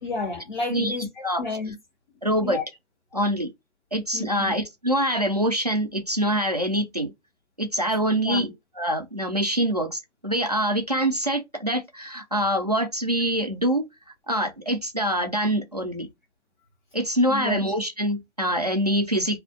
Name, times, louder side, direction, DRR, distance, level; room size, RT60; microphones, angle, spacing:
voice 1, 0.0-1.7 2.4-2.6 4.1-4.5 8.2-8.5 17.3-17.6, left 3 dB, 40° left, 1.0 m, -31 dB
voice 2, 0.7-1.4 2.2-2.6 3.1-3.5 3.9-7.1 7.6-8.5 8.8-13.9 14.3-16.1 16.9-19.4, equal, 35° right, 0.4 m, -25 dB
2.4 x 2.1 x 2.4 m
figure-of-eight pair, 165°, 35 cm